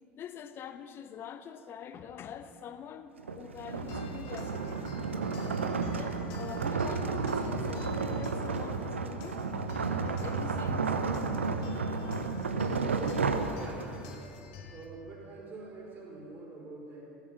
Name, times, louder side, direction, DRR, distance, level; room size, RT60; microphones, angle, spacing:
voice 1, 0.1-4.8 5.9-9.4 10.0-10.9, left 8 dB, 35° left, 0.8 m, -45 dB
sound 1, 3.2-14.1, right 4 dB, 80° right, 0.8 m, -32 dB
sound 2, 3.7-14.9, left 4 dB, 55° left, 1.4 m, -47 dB
voice 2, 13.4-13.9 14.7-17.0, right 3 dB, 35° right, 4.2 m, -46 dB
15.0 x 9.8 x 7.4 m
figure-of-eight pair, 75°, 7 cm